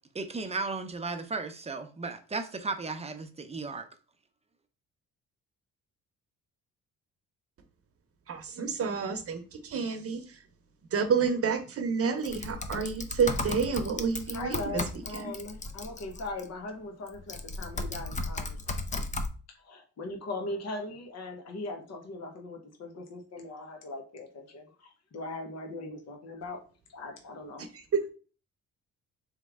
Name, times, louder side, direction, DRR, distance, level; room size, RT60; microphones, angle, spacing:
voice 1, 0.1-3.9, right 3 dB, 20° right, 7 dB, 0.6 m, -35 dB
voice 2, 8.3-10.2 10.9-14.6 15.1-15.2, right 5 dB, 50° right, 7 dB, 0.9 m, -29 dB
Typing, 12.2-16.4 17.1-19.3, left 2 dB, 25° left, 0.6 m, -35 dB
voice 3, 14.3-18.6 19.6-26.6 26.9-27.7, left 2 dB, 55° left, 3 dB, 1.0 m, -40 dB
3.5 x 3.1 x 3.6 m, 0.36 s
cardioid pair, 90°, 30 cm